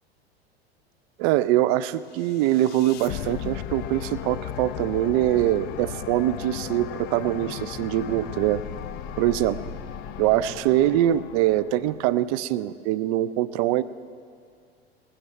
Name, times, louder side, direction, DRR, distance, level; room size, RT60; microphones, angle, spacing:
voice 1, 1.2-8.6 9.2-9.6 10.2-13.8, right 13 dB, 35° right, 16 dB, 0.4 m, -23 dB
sound 1, 2.1-12.3, left 10 dB, 30° left, 0.5 m, -36 dB
20.0 x 15.5 x 3.3 m, 2.2 s
figure-of-eight pair, 85°, 31 cm